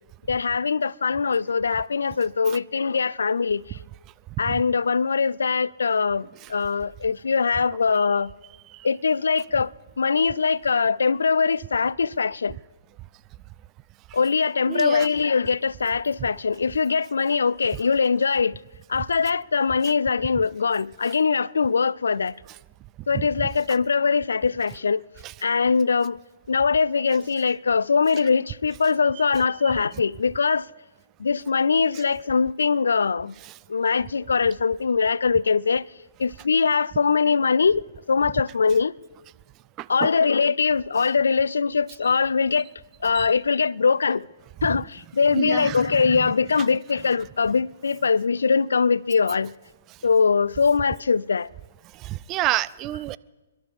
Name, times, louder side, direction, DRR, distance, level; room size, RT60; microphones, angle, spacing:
voice 1, 0.3-3.6 4.4-8.3 8.8-9.7 10.0-12.6 14.1-18.6 18.9-22.4 23.1-25.0 25.4-26.2 26.5-30.7 31.2-33.3 33.7-35.8 36.2-38.9 39.9-42.7 43.0-44.3 44.6-49.5 50.0-51.5, left 5 dB, 80° left, 0.4 m, -22 dB
voice 2, 14.7-15.1 23.1-23.2 39.8-40.1 43.2-43.3 45.3-45.8 52.1-53.2, right 16 dB, 25° right, 0.4 m, -28 dB
28.5 x 12.0 x 3.6 m
hypercardioid pair, 135°, 0 cm